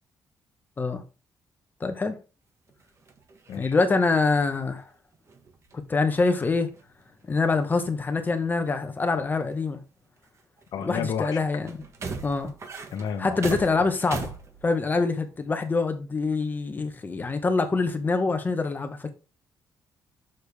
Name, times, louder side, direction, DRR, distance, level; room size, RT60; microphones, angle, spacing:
voice 1, 1.8-2.2 3.5-4.9 5.9-6.7 7.3-9.8 10.8-11.8 12.2-12.5 13.2-14.3 14.6-19.1, left 3 dB, 30° left, 1.1 m, -25 dB
sound 1, 2.7-5.9 6.2-7.1 7.3-7.9 8.4-9.1 9.5-9.6 10.2-10.9 11.6-15.0 15.3-15.5, right 4 dB, 45° right, 1.5 m, -40 dB
voice 2, 10.7-11.4 12.9-13.4 13.8-13.9, left 7 dB, 80° left, 1.2 m, -31 dB
6.6 x 6.5 x 3.5 m
cardioid pair, 105°, 7 cm